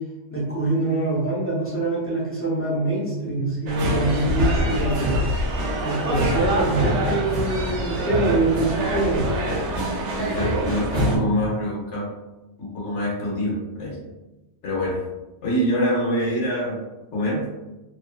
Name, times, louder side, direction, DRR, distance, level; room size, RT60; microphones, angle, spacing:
voice 1, 0.3-5.2 5.8-9.2, right 2 dB, 15° left, -6 dB, 0.5 m, -24 dB
sound 1, 3.7-11.2, equal, 80° right, 0.9 m, -24 dB
voice 2, 10.2-12.1 12.6-14.0 14.6-15.0 15.4-16.8 17.1-17.5, equal, 85° left, -4 dB, 1.2 m, -25 dB
2.8 x 2.4 x 2.2 m, 1.1 s
omnidirectional pair, 1.2 m